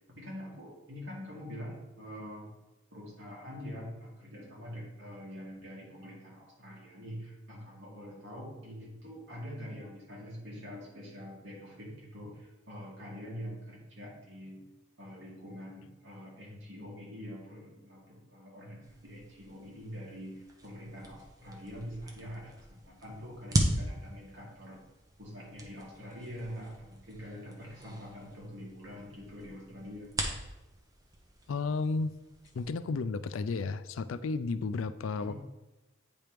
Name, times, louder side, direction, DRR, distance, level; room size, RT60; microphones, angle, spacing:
voice 1, 0.1-2.5 2.9-14.6 15.0-24.8 25.2-30.2 35.2-35.3, equal, 70° right, -4 dB, 2.4 m, -45 dB
sound 1, 18.8-32.7, right 1 dB, 20° right, 0.7 m, -39 dB
voice 2, 31.5-32.1 32.5-35.3, left 4 dB, 85° left, 13 dB, 0.4 m, -32 dB
8.6 x 3.1 x 5.0 m, 1.0 s
head